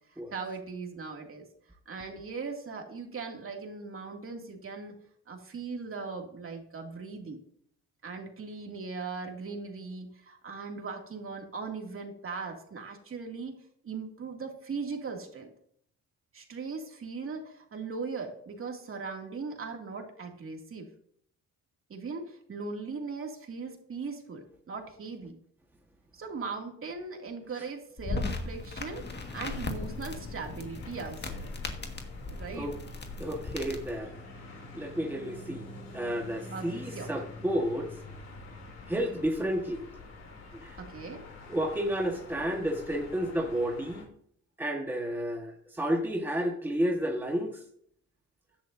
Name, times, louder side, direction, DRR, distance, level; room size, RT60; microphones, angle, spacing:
voice 1, 0.1-1.5 1.9-5.0 5.3-7.4 8.0-15.5 16.3-20.9 21.9-25.4 26.1-31.5 32.3-32.7 36.5-37.1 40.8-41.2, right 4 dB, 45° right, 2 dB, 2.6 m, -39 dB
sound 1, 28.0-34.0, left 3 dB, 35° left, 1.8 m, -37 dB
sound 2, 28.8-44.0, left 3 dB, 60° left, 3.2 m, -47 dB
voice 2, 33.2-34.2 34.7-35.7 35.9-37.9 38.9-39.8 40.5-40.8 41.5-44.1 44.6-47.6, equal, 5° right, 1 dB, 1.5 m, -31 dB
15.0 x 10.5 x 2.7 m, 0.65 s
cardioid pair, 90°, 30 cm